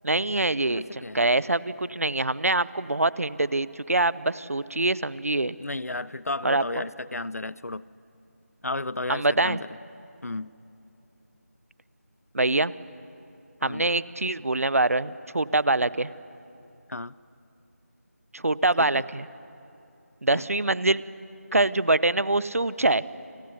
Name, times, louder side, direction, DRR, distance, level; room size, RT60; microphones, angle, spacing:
voice 1, 0.0-5.5 6.4-6.6 9.1-9.6 12.3-12.7 13.6-16.1 18.3-19.3 20.2-21.0 21.5-23.0, right 2 dB, 60° right, 18 dB, 0.9 m, -24 dB
voice 2, 0.7-1.2 5.6-7.8 8.6-9.7 10.2-10.6 13.6-13.9 16.9-17.1 18.8-19.1 20.3-20.4, left 2 dB, 70° left, 20 dB, 0.7 m, -33 dB
29.0 x 18.0 x 9.6 m, 2.8 s
figure-of-eight pair, 170°, 9 cm